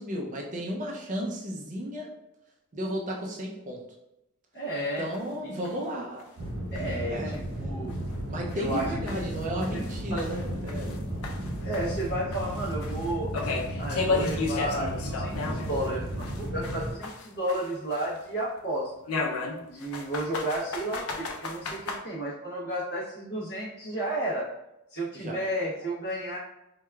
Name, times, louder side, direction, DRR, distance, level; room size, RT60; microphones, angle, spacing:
voice 1, 0.0-2.1 2.7-3.8 4.8-6.3 6.7-7.3 8.3-11.0 25.1-25.4, equal, 35° right, -1 dB, 0.5 m, -34 dB
voice 2, 4.5-5.1 6.7-7.9 8.5-9.2 9.5-9.8 10.1-10.2 11.6-13.3 13.8-18.9 19.6-24.5 24.9-26.4, right 1 dB, 55° left, -10 dB, 0.9 m, -32 dB
sound 1, 5.1-5.2 5.6-5.7 6.2-6.3 6.8-6.9 7.3-7.4 7.9-8.0 8.5-11.0 11.2-15.9 16.2-18.2 19.1-22.0, left 3 dB, 80° left, 0.5 m, -33 dB
sound 2, 6.4-16.9, right 1 dB, 80° right, 1.1 m, -34 dB
4.6 x 2.3 x 2.3 m, 0.89 s
head